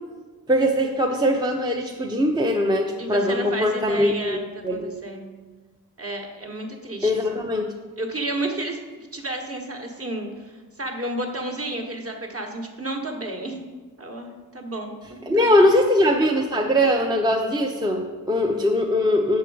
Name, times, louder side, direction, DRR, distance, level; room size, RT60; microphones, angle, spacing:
voice 1, 0.5-4.9 7.0-7.7 15.3-19.4, left 1 dB, 10° right, 1 dB, 0.5 m, -21 dB
voice 2, 3.0-5.3 6.0-7.2 8.0-13.6 14.0-15.6, right 1 dB, 35° right, 2 dB, 1.1 m, -32 dB
6.2 x 4.6 x 4.7 m, 1.3 s
cardioid pair, 55°, 39 cm